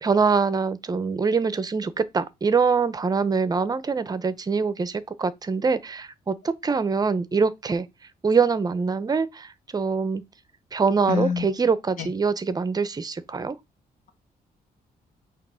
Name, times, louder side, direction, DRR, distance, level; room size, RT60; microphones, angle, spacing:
voice 1, 0.0-7.9 8.2-10.2 10.7-13.6, right 5 dB, 25° right, 0.7 m, -24 dB
voice 2, 11.1-11.5 12.0-12.1, left 7 dB, 55° left, 1.9 m, -25 dB
8.5 x 3.0 x 6.2 m
cardioid pair, 145°, 16 cm